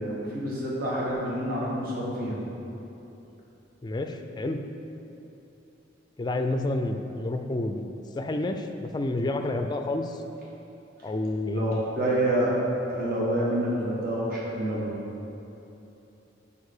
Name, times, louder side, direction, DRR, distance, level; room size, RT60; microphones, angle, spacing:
voice 1, 0.0-2.4 11.5-12.6 12.9-14.9, right 1 dB, 55° right, -5 dB, 1.3 m, -28 dB
voice 2, 3.8-4.6 6.2-7.8 8.2-10.2 11.0-11.8, left 2 dB, 25° left, 6 dB, 0.4 m, -29 dB
6.5 x 5.6 x 4.9 m, 2.9 s
head